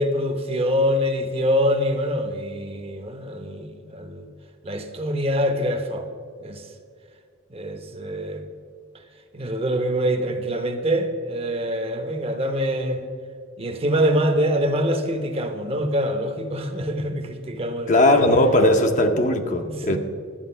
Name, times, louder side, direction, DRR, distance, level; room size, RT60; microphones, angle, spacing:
voice 1, 0.0-4.3 4.6-6.1 6.4-6.6 7.5-8.4 9.3-13.0 13.6-18.2 19.6-20.0, equal, 30° right, 6 dB, 0.8 m, -25 dB
voice 2, 17.9-20.0, left 1 dB, 35° left, 6 dB, 0.7 m, -18 dB
11.5 x 8.2 x 5.6 m, 2.2 s
head